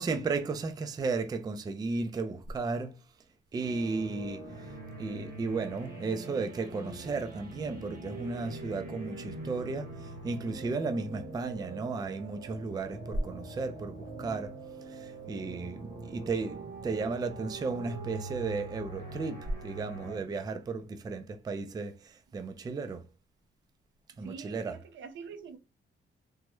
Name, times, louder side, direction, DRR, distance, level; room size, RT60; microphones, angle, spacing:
voice 1, 0.0-2.9 3.5-4.5 5.0-14.5 14.9-23.1 24.2-24.7, right 4 dB, 20° right, 0.3 m, -34 dB
sound 1, 3.6-20.2, right 2 dB, 50° right, 1.0 m, -43 dB
voice 2, 15.9-16.3 24.1-25.6, right 5 dB, 70° right, 0.5 m, -46 dB
3.4 x 2.0 x 3.0 m
wide cardioid pair, 140°, 20 cm